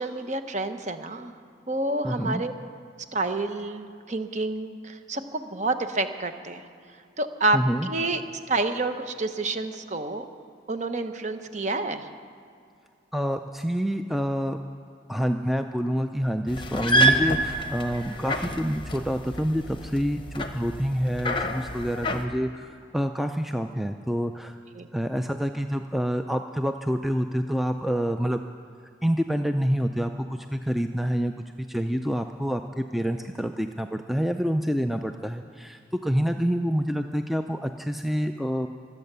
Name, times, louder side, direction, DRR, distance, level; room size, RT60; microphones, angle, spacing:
voice 1, 0.0-1.3 1.7-2.5 3.1-6.6 7.2-8.2 8.5-10.2 10.7-12.1 24.7-24.9, right 2 dB, 40° right, 8 dB, 0.9 m, -28 dB
voice 2, 2.0-2.4 7.5-7.9 13.1-14.6 15.1-24.6 24.9-28.4 29.0-38.7, equal, ahead, 6 dB, 0.3 m, -27 dB
sound 1, 16.5-22.3, right 1 dB, 25° left, 0.9 m, -27 dB
24.5 x 8.5 x 6.8 m, 2.3 s
head